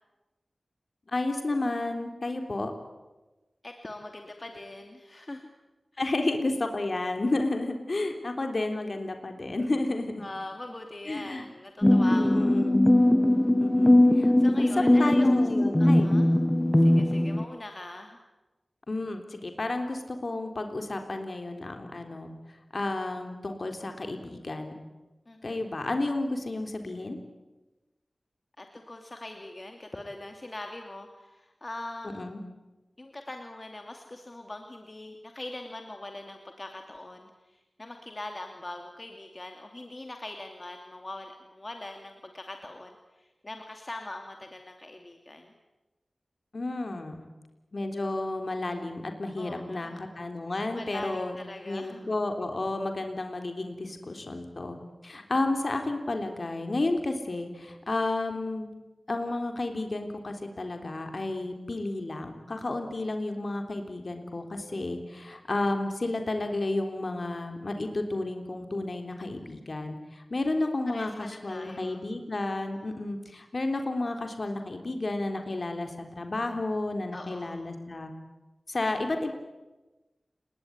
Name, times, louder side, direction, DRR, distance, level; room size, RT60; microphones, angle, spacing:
voice 1, 1.1-2.7 6.0-10.2 11.1-11.4 12.1-12.8 13.6-14.3 14.6-14.7 15.0-16.1 18.9-22.3 22.7-24.7 25.4-27.2 32.2-32.4 46.5-47.2 47.7-51.4 51.6-54.8 55.0-58.7 59.1-78.1 78.7-79.3, left 2 dB, 50° left, 5 dB, 3.5 m, -31 dB
voice 2, 3.6-5.4 5.9-6.1 10.2-12.8 14.4-15.3 15.8-16.3 16.8-18.2 25.3-25.7 28.6-32.2 33.0-45.5 49.4-50.0 50.8-52.1 70.9-72.0 72.9-73.1 77.1-77.6, left 2 dB, 35° left, 4 dB, 2.6 m, -42 dB
sound 1, 11.8-17.4, left 1 dB, 15° left, 1.0 m, -20 dB
29.5 x 20.5 x 9.8 m, 1.1 s
wide cardioid pair, 90°, 0 cm